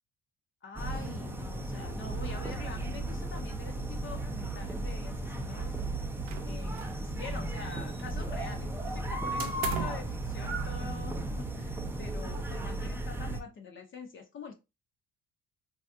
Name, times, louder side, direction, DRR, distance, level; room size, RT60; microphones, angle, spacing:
voice 1, 0.6-5.8 6.4-14.5, left 4 dB, 40° left, 4 dB, 0.6 m, -45 dB
sound 1, 0.8-13.4, right 1 dB, 5° right, 0.4 m, -35 dB
sound 2, 6.3-7.1 7.3-8.3 9.4-10.1, right 9 dB, 90° right, 0.6 m, -38 dB
3.3 x 2.4 x 2.6 m, 0.26 s
cardioid pair, 110°, 32 cm